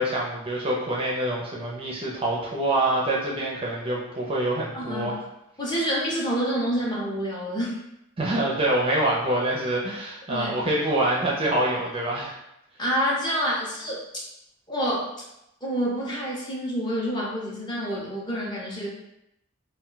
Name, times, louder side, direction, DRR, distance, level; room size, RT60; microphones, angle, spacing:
voice 1, 0.0-5.1 8.2-12.3, right 1 dB, 25° right, -3 dB, 0.4 m, -25 dB
voice 2, 4.7-5.1 5.6-7.8 10.3-10.5 12.8-14.0 14.7-15.2 15.6-18.9, equal, 20° left, -4 dB, 0.6 m, -27 dB
2.2 x 2.2 x 3.7 m, 0.83 s
head